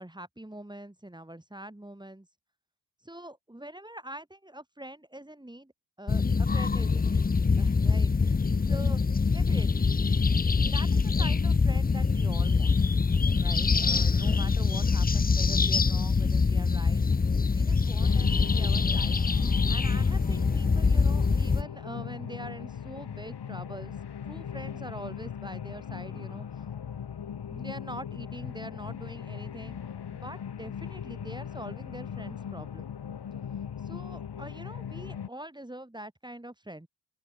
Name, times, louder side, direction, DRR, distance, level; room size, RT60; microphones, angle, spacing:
voice 1, 0.0-2.3 3.0-5.7 6.0-7.3 7.6-9.0 9.3-9.9 10.6-12.7 13.4-17.0 17.5-19.2 19.7-24.0 24.2-26.5 27.5-29.8 30.1-32.9 33.8-36.9, right 1 dB, 10° right, 3.8 m, -44 dB
sound 1, 6.1-21.6, left 4 dB, 20° left, 0.7 m, -24 dB
sound 2, 18.0-35.3, left 8 dB, 70° left, 2.7 m, -39 dB
open air
cardioid pair, 70°, 41 cm